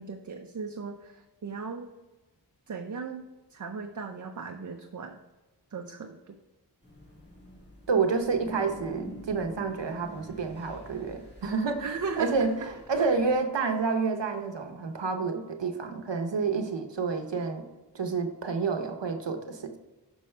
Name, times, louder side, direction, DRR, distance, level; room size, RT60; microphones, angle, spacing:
voice 1, 0.0-1.9 2.7-3.2 3.5-5.2 5.7-6.4 11.8-12.5 13.0-13.1, right 5 dB, 45° right, 5 dB, 0.5 m, -37 dB
sound 1, 6.8-13.3, equal, 25° left, 2.2 m, -47 dB
voice 2, 7.9-17.6 17.9-19.8, right 4 dB, 85° right, 6 dB, 0.8 m, -29 dB
6.2 x 5.6 x 3.2 m, 1.1 s
wide cardioid pair, 55°, 42 cm